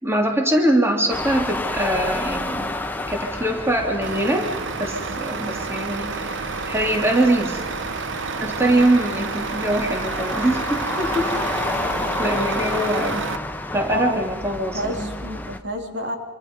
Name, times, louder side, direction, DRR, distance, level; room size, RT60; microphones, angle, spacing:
voice 1, 0.0-2.7 3.1-4.5 4.8-6.4 6.7-7.6 8.4-11.4 12.2-13.2 13.7-15.1, right 1 dB, 15° right, 1 dB, 2.9 m, -23 dB
sound 1, 1.1-15.6, left 2 dB, 10° left, 1.1 m, -30 dB
Truck, 4.0-13.4, right 5 dB, 90° right, 0.8 m, -30 dB
voice 2, 13.9-14.4 14.7-16.2, equal, 75° right, 3 dB, 3.2 m, -29 dB
27.0 x 26.5 x 5.4 m, 1.3 s
head